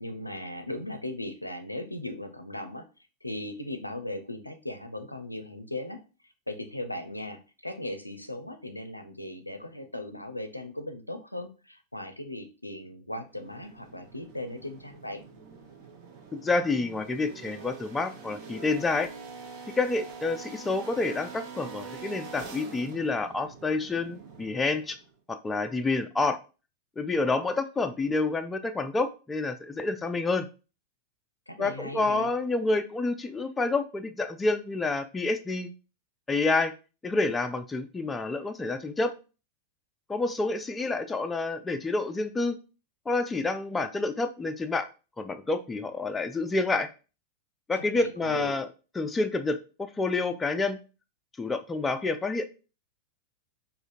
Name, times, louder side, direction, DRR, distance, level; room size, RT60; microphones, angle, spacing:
voice 1, 0.0-2.9 3.2-6.0 6.5-15.2 31.5-32.3 47.8-48.5, left 1 dB, 85° left, 7 dB, 0.5 m, -38 dB
sound 1, 13.3-25.1, right 5 dB, 40° right, 0.8 m, -45 dB
voice 2, 16.3-19.1 19.8-25.0 25.3-26.4 27.0-30.5 31.6-35.7 36.3-36.7 37.0-39.1 40.1-42.6 43.1-44.9 45.2-46.9 47.7-48.7 49.0-50.8 51.4-52.5, left 3 dB, 15° left, 8 dB, 0.4 m, -28 dB
4.9 x 2.5 x 2.5 m, 0.33 s
figure-of-eight pair, 90°, 0 cm